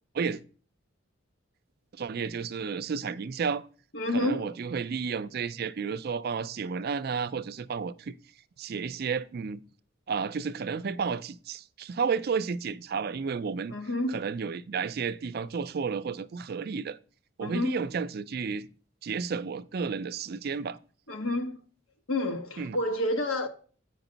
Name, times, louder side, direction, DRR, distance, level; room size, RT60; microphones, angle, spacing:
voice 1, 2.0-3.7 4.1-8.1 8.6-9.6 10.1-13.8 14.1-17.0 17.4-18.7 19.0-20.8 22.6-22.8, right 5 dB, 50° right, 0.4 m, -32 dB
voice 2, 3.9-4.5 13.7-14.2 17.4-17.8 21.1-21.6 22.1-23.5, left 1 dB, 85° left, 1.2 m, -29 dB
8.8 x 5.1 x 3.9 m
head